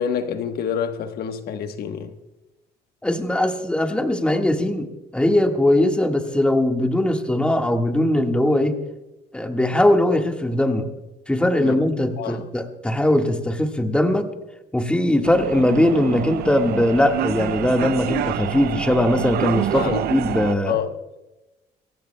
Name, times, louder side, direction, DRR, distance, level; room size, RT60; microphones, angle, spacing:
voice 1, 0.0-2.1 11.6-11.8 12.2-12.4 19.7-20.0 20.7-20.9, left 8 dB, 65° left, 1.1 m, -27 dB
voice 2, 3.0-8.8 9.3-10.9 11.3-14.3 14.7-20.8, left 1 dB, 5° left, 1.6 m, -20 dB
sound 1, 15.2-20.5, right 12 dB, 65° right, 0.6 m, -27 dB
24.0 x 17.0 x 2.2 m
cardioid pair, 110°, 17 cm